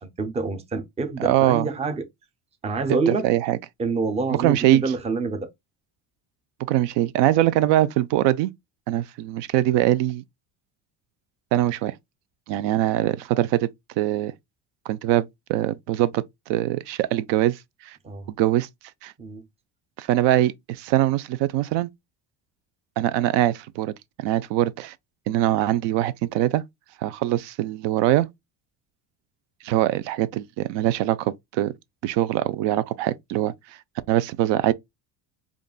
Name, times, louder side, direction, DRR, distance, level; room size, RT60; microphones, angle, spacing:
voice 1, 0.0-2.1 2.6-3.3 3.8-5.5 18.0-18.3 19.2-19.4, right 4 dB, 15° right, 0.5 m, -27 dB
voice 2, 1.2-1.7 3.1-3.6 4.4-4.8 6.7-8.5 8.9-10.2 11.5-12.0 12.5-13.7 14.0-14.3 14.9-18.0 18.4-18.7 19.0-19.1 20.0-21.9 23.0-24.9 25.3-26.6 27.0-28.3 29.6-31.7 32.0-33.8 34.1-34.7, right 14 dB, 75° right, 0.5 m, -22 dB
5.1 x 2.5 x 2.3 m
cardioid pair, 150°, 43 cm